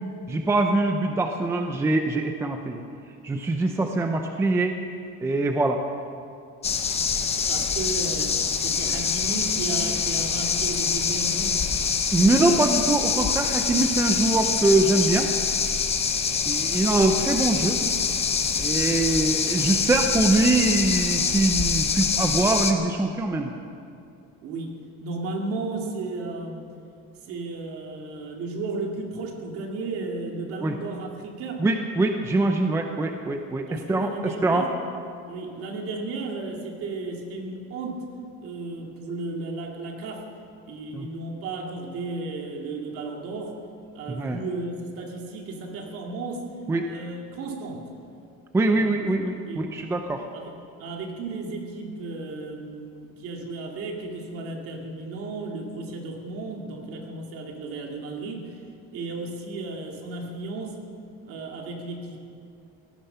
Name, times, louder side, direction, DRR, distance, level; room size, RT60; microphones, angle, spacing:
voice 1, 0.3-2.8 3.2-4.8 5.2-5.8 12.1-15.3 16.5-17.8 18.6-23.5 30.6-30.8 31.6-34.1 34.4-34.6 40.9-41.1 44.1-44.4 46.7-46.8 48.5-50.2, right 2 dB, 10° right, 4 dB, 0.5 m, -23 dB
sound 1, 6.6-22.7, left 6 dB, 20° left, 0.8 m, -25 dB
voice 2, 7.4-11.6 24.4-26.7 27.2-31.7 33.7-34.7 35.3-38.1 38.4-40.3 40.7-43.6 43.9-46.5 46.9-47.9 48.6-48.9 49.3-49.7 50.3-58.6 58.9-60.8 61.2-62.2, right 3 dB, 50° right, 1 dB, 2.3 m, -34 dB
18.0 x 14.0 x 5.6 m, 2.5 s
cardioid pair, 175°, 30 cm